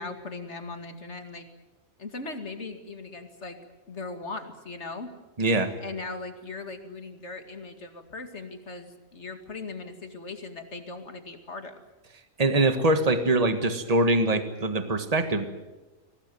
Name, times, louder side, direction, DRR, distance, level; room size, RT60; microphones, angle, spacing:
voice 1, 0.0-1.5 2.0-3.6 3.9-5.1 5.8-11.8, left 3 dB, 55° left, 7 dB, 2.5 m, -39 dB
voice 2, 5.4-5.7 12.4-15.4, right 2 dB, 30° right, 8 dB, 1.8 m, -23 dB
24.5 x 18.0 x 9.4 m, 1.1 s
omnidirectional pair, 1.4 m